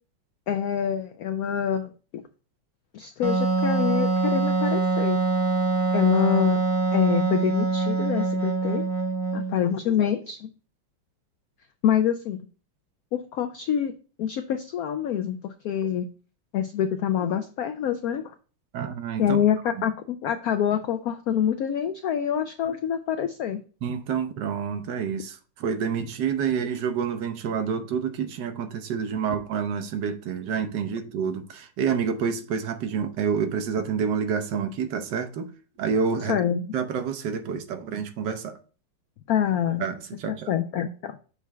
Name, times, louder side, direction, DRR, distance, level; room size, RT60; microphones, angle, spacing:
voice 1, 0.5-1.9 2.9-5.2 5.9-6.6 6.9-8.8 9.3-10.5 11.8-12.4 13.1-13.9 14.2-16.1 16.5-18.3 19.2-23.6 36.3-36.7 39.3-39.8 40.3-41.2, left 9 dB, 85° left, 0.8 m, -26 dB
Wind instrument woodwind instrument, 3.2-9.7, right 4 dB, 15° left, 0.9 m, -24 dB
voice 2, 18.7-19.4 23.8-35.5 35.8-36.4 36.7-38.6 39.8-40.5, right 6 dB, 70° right, 1.3 m, -28 dB
6.8 x 3.1 x 4.6 m
omnidirectional pair, 2.1 m